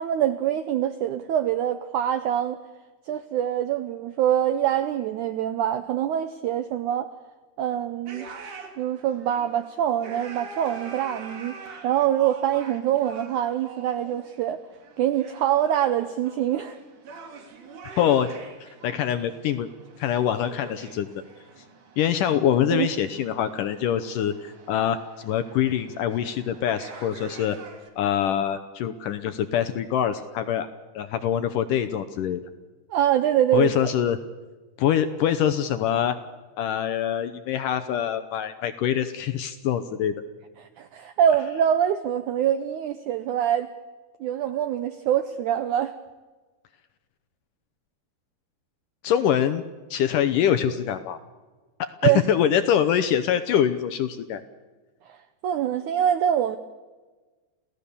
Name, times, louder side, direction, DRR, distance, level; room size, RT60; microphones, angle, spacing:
voice 1, 0.0-2.6 3.1-7.1 7.6-8.3 8.8-11.6 11.8-14.6 15.0-16.8 22.7-22.9 32.9-33.8 40.6-43.7 44.2-45.9 52.0-52.2 55.1-55.2 55.4-56.6, right 10 dB, 85° right, 10 dB, 1.7 m, -24 dB
sound 1, 8.1-27.9, right 4 dB, 55° right, 3.8 m, -45 dB
voice 2, 18.0-18.3 18.6-19.7 20.0-21.1 22.0-27.6 28.0-30.7 31.0-32.4 33.5-34.2 34.8-36.2 36.6-40.1 49.0-49.6 49.9-51.2 51.8-54.4, left 9 dB, 75° left, 10 dB, 2.1 m, -24 dB
28.5 x 17.0 x 7.0 m, 1.3 s
omnidirectional pair, 4.6 m